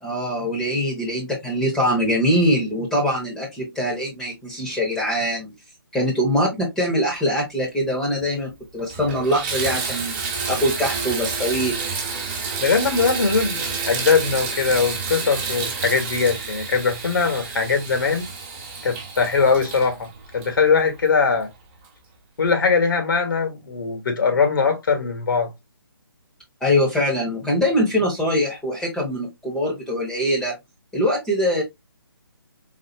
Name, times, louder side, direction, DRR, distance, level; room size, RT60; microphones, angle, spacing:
voice 1, 0.0-5.5 5.9-10.2 10.5-11.8 26.6-30.5 30.9-31.6, equal, 5° left, 1.0 m, -23 dB
Water tap faucet / Bathtub (filling or washing), 8.2-8.3 8.8-21.2 21.8-21.9 22.5-22.6, right 5 dB, 25° right, 1.2 m, -30 dB
voice 2, 12.6-18.3 18.8-21.5 22.4-25.5, left 5 dB, 60° left, 1.4 m, -21 dB
4.1 x 2.7 x 2.7 m
figure-of-eight pair, 150°, 13 cm